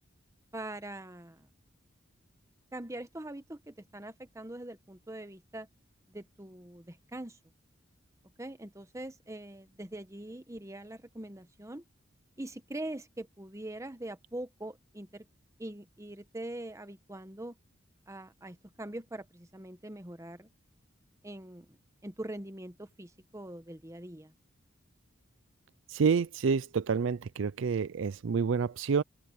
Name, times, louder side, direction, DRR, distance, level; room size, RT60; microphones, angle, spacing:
voice 1, 0.5-1.5 2.7-5.7 6.1-7.4 8.4-11.8 12.4-15.3 15.6-17.6 18.1-20.5 21.2-21.8 22.0-24.3, right 1 dB, 15° right, 1.2 m, -43 dB
voice 2, 25.9-29.0, right 5 dB, 70° right, 0.4 m, -28 dB
head